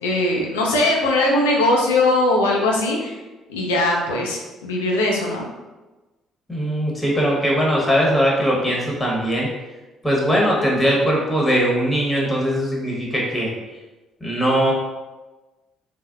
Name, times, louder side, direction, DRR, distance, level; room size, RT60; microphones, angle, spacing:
voice 1, 0.0-3.1 3.5-5.4, left 2 dB, 90° left, -1 dB, 0.5 m, -20 dB
voice 2, 6.5-9.5 10.0-13.5 14.2-14.7, equal, 15° left, -4 dB, 1.0 m, -20 dB
3.3 x 2.1 x 2.4 m, 1.2 s
hypercardioid pair, 55°, 0 cm